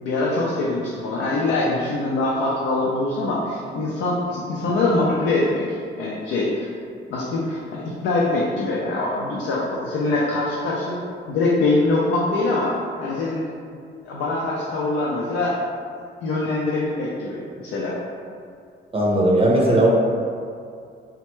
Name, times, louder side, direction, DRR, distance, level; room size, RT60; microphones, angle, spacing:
voice 1, 0.0-5.7 6.0-6.7 7.1-11.0 11.3-13.4 14.0-15.5 16.2-18.0, left 2 dB, 85° left, -5 dB, 0.5 m, -23 dB
voice 2, 18.9-19.9, right 1 dB, 30° right, -3 dB, 0.5 m, -17 dB
3.4 x 2.1 x 3.0 m, 2.3 s
cardioid pair, 90°, 20 cm